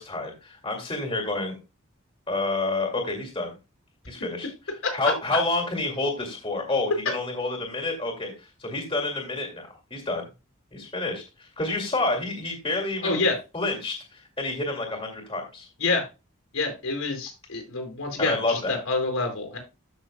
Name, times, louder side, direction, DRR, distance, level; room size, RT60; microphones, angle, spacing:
voice 1, 0.0-1.6 2.3-3.5 4.1-4.5 4.9-10.2 10.7-13.2 13.5-15.7 18.2-18.8, left 2 dB, 25° left, 2 dB, 2.2 m, -29 dB
voice 2, 13.0-13.3 15.8-16.1 16.5-19.6, left 3 dB, 90° left, 2 dB, 4.6 m, -27 dB
13.5 x 6.5 x 2.2 m, 0.27 s
head